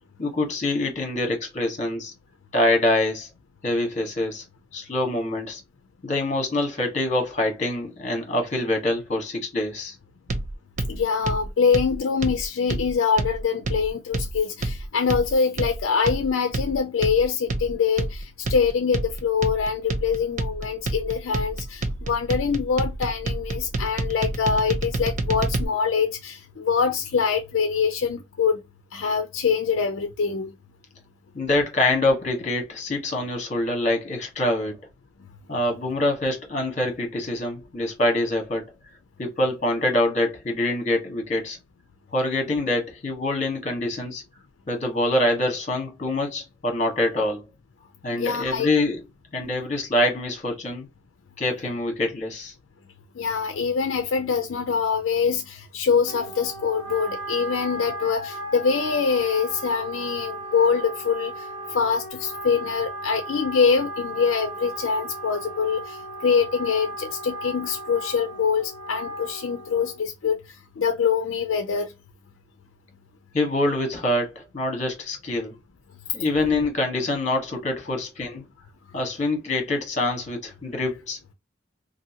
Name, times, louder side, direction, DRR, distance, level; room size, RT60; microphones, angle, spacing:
voice 1, 0.2-2.1 2.5-3.3 3.6-4.4 4.7-5.6 6.0-9.9 31.3-34.8 35.5-38.6 39.2-41.6 42.1-44.2 44.7-47.4 48.0-49.0 49.3-50.9 51.4-52.5 73.3-75.5 76.1-78.4 78.9-81.3, left 1 dB, 35° left, 1.1 m, -25 dB
sound 1, 10.3-25.6, right 2 dB, 35° right, 0.3 m, -29 dB
voice 2, 10.8-28.6 28.9-30.5 48.1-48.7 53.1-71.9, left 6 dB, 70° left, 0.4 m, -24 dB
Wind instrument woodwind instrument, 56.0-70.1, right 2 dB, 60° right, 1.5 m, -36 dB
2.7 x 2.6 x 2.7 m
head